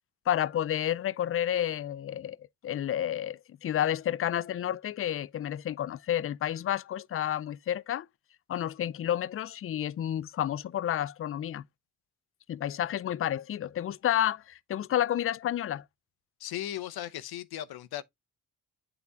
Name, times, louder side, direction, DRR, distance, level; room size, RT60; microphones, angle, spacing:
voice 1, 0.3-2.4 2.6-8.1 8.5-11.6 12.5-15.8, left 11 dB, 40° left, 0.4 m, -30 dB
voice 2, 16.4-18.0, left 12 dB, 75° left, 0.8 m, -37 dB
8.2 x 4.1 x 3.4 m
cardioid pair, 85°, 37 cm